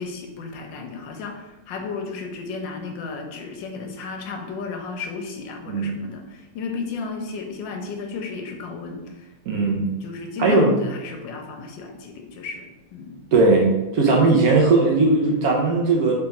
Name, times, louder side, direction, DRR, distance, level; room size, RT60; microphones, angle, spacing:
voice 1, 0.0-9.6 10.0-12.6 12.9-13.1, left 4 dB, 85° left, 4 dB, 1.4 m, -33 dB
voice 2, 5.7-6.0 9.5-9.9 10.4-10.7 13.3-16.1, right 3 dB, 65° right, -1 dB, 1.0 m, -18 dB
3.4 x 3.4 x 4.1 m, 1.0 s
omnidirectional pair, 2.0 m